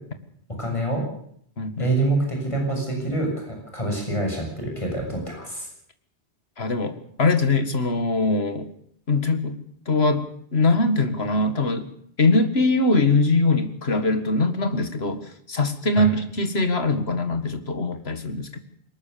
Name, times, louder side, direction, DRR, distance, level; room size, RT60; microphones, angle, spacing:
voice 1, 0.6-1.0 1.8-5.7 16.0-16.1, right 2 dB, 30° left, 1 dB, 7.5 m, -26 dB
voice 2, 1.6-1.9 6.6-8.7 9.1-9.6 9.9-11.9 12.2-18.6, left 2 dB, 70° left, 10 dB, 2.2 m, -22 dB
22.0 x 20.0 x 7.0 m, 0.66 s
omnidirectional pair, 1.1 m